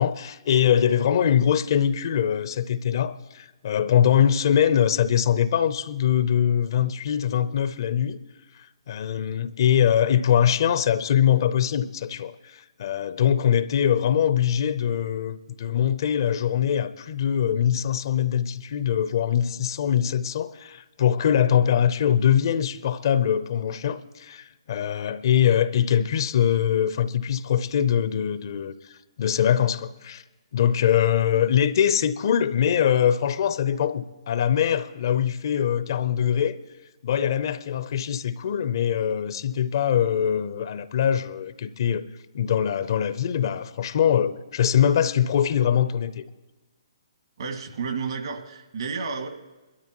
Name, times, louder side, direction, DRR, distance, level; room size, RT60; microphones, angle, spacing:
voice 1, 0.0-8.2 8.9-30.2 30.5-36.6 37.0-42.0 42.3-46.2, left 9 dB, 50° left, 0.6 m, -23 dB
voice 2, 47.4-49.3, right 5 dB, 65° right, 1.9 m, -31 dB
21.0 x 12.5 x 3.0 m
hypercardioid pair, 140°, 3 cm